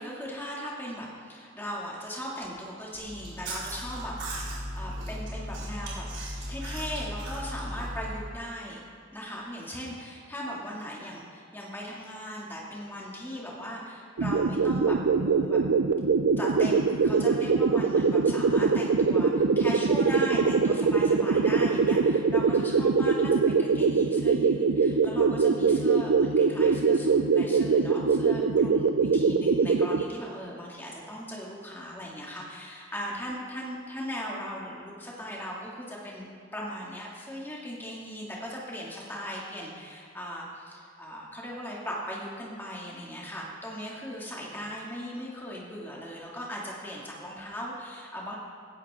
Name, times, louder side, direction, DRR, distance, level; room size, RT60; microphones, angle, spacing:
voice 1, 0.0-6.0 6.5-8.8 9.1-15.6 16.4-48.3, equal, 10° left, -4 dB, 2.5 m, -38 dB
Chewing mastication, 2.9-8.3, equal, 70° right, 4.5 m, -36 dB
sound 1, 14.2-30.0, right 4 dB, 90° right, 0.5 m, -23 dB
16.0 x 15.5 x 3.8 m, 2.3 s
head